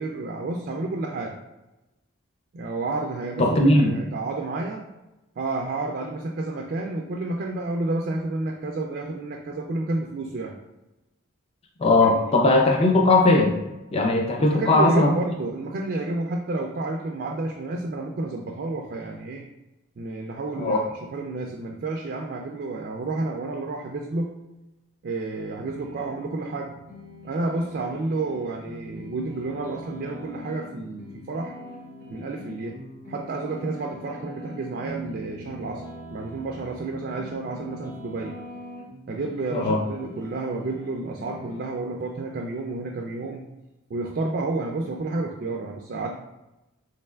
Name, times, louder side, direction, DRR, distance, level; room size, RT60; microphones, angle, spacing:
voice 1, 0.0-1.4 2.5-4.8 5.4-10.5 12.0-12.3 14.4-19.4 20.0-24.3 25.0-26.8 27.2-31.5 32.1-32.8 33.1-35.8 36.1-38.4 39.1-43.5 43.9-46.1, right 2 dB, 50° right, 1 dB, 0.3 m, -30 dB
voice 2, 3.4-3.9 11.8-13.5 13.9-15.1 20.6-20.8 39.5-39.8, left 2 dB, 30° left, 1 dB, 0.4 m, -19 dB
sound 1, 25.6-26.1 26.6-41.6, left 1 dB, 45° left, 1.0 m, -42 dB
3.6 x 3.2 x 2.2 m, 1.0 s
head